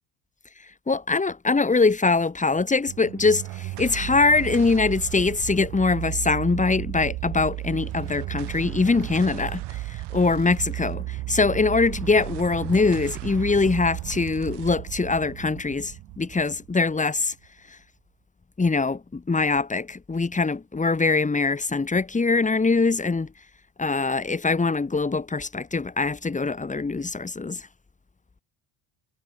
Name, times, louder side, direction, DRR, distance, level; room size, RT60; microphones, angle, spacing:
voice 1, 0.9-9.8 10.1-17.3 18.6-23.3 23.8-27.6, left 4 dB, 15° left, 3.0 m, -23 dB
sound 1, 2.9-17.5, right 18 dB, 70° right, 4.3 m, -34 dB
supercardioid pair, 95°, 43 cm